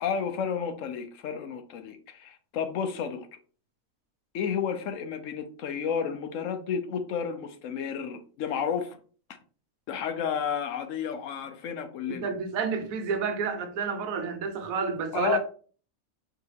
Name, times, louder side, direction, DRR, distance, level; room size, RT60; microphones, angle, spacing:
voice 1, 0.0-3.3 4.3-9.0 9.9-12.3 15.1-15.4, left 7 dB, 75° left, 0.9 m, -31 dB
voice 2, 12.1-15.4, right 5 dB, 80° right, 1.1 m, -30 dB
4.5 x 3.0 x 3.2 m
omnidirectional pair, 1.4 m